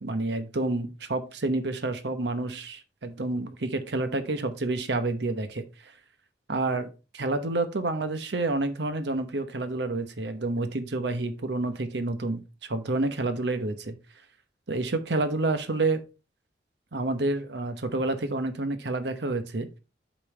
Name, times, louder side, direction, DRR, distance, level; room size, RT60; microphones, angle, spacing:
voice 1, 0.0-5.6 6.5-6.9 7.1-13.9 14.7-16.0 16.9-19.7, right 2 dB, 80° right, 0.9 m, -29 dB
8.5 x 5.3 x 3.2 m
head